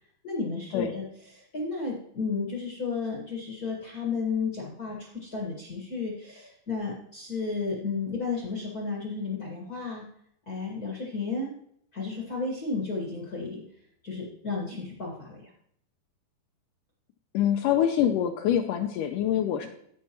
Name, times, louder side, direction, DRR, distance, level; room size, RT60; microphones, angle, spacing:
voice 1, 0.2-1.1 1.3-10.0 10.5-11.5 11.9-13.6 14.0-15.5, left 4 dB, 45° left, -2 dB, 1.2 m, -33 dB
voice 2, 17.3-19.7, left 10 dB, 80° left, 5 dB, 2.0 m, -25 dB
15.0 x 5.4 x 3.0 m, 0.70 s
omnidirectional pair, 4.2 m